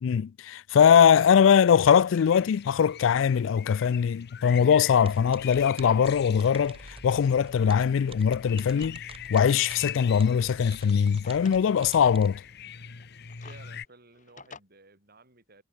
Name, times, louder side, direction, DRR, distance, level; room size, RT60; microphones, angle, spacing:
voice 1, 0.0-9.0 9.3-12.4, left 7 dB, 75° left, 0.3 m, -21 dB
voice 2, 1.1-1.5 13.4-15.6, right 2 dB, 50° right, 6.4 m, -54 dB
sound 1, 1.7-13.8, left 9 dB, 60° left, 1.0 m, -43 dB
sound 2, 5.0-12.4, right 3 dB, 30° right, 2.4 m, -49 dB
Drawer open or close, 5.4-6.0 6.4-6.5 7.5-9.2 9.7-9.8 10.5-11.7 12.9-14.6, left 5 dB, 40° left, 2.2 m, -53 dB
head